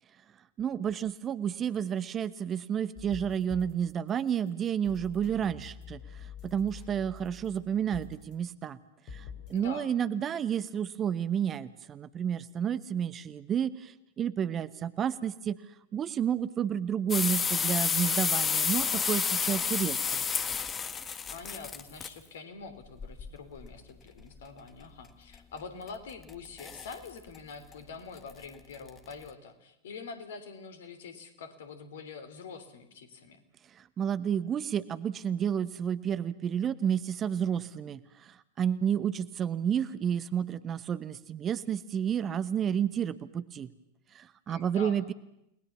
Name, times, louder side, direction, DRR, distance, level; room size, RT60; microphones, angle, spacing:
voice 1, 0.6-8.8 9.1-15.6 15.9-20.2 33.7-43.7 44.1-45.1, right 8 dB, 25° right, 16 dB, 1.0 m, -31 dB
sound 1, 2.9-9.7, left 5 dB, 40° left, 6.1 m, -48 dB
voice 2, 9.5-9.9 21.3-33.4 44.5-45.0, left 5 dB, 60° left, 10 dB, 3.3 m, -45 dB
sound 2, 17.1-22.1 23.0-23.7 25.3-25.4 25.9-26.3 26.6-26.9 27.3-27.4 27.7-27.8 28.3-28.4 28.9-29.1, left 6 dB, 20° left, 1.5 m, -30 dB
30.0 x 20.5 x 7.1 m, 0.82 s
figure-of-eight pair, 90°, 0 cm